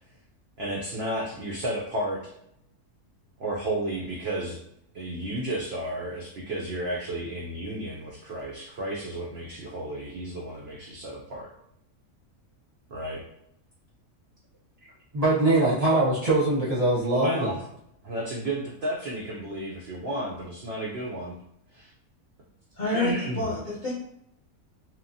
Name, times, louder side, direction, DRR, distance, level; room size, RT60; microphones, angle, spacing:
voice 1, 0.6-2.3 3.4-4.6 4.9-11.5 12.9-13.2 14.8-14.9 17.1-17.6 18.0-21.3 21.7-21.9 22.9-23.5, right 1 dB, 80° right, -2 dB, 0.5 m, -32 dB
voice 2, 15.1-17.5, right 2 dB, 35° right, -8 dB, 0.7 m, -22 dB
voice 3, 22.7-23.9, left 2 dB, 50° left, -8 dB, 0.6 m, -28 dB
2.9 x 2.1 x 2.6 m, 0.75 s
omnidirectional pair, 1.7 m